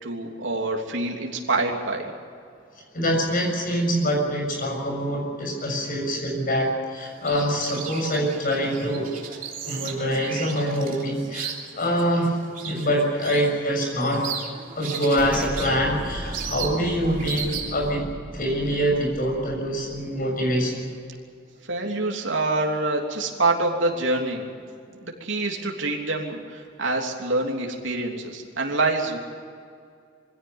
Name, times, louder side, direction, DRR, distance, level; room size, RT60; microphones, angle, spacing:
voice 1, 0.0-2.1 21.7-24.5 24.9-29.2, right 2 dB, 75° right, 0 dB, 3.2 m, -26 dB
voice 2, 2.9-9.1 9.6-12.4 12.6-14.3 14.7-18.0 18.3-20.9, equal, 45° left, 2 dB, 6.9 m, -25 dB
sound 1, 7.0-17.9, right 6 dB, 45° right, 3.4 m, -36 dB
Explosion, 15.2-20.6, equal, 5° right, 2.5 m, -36 dB
23.0 x 16.5 x 9.6 m, 2.2 s
head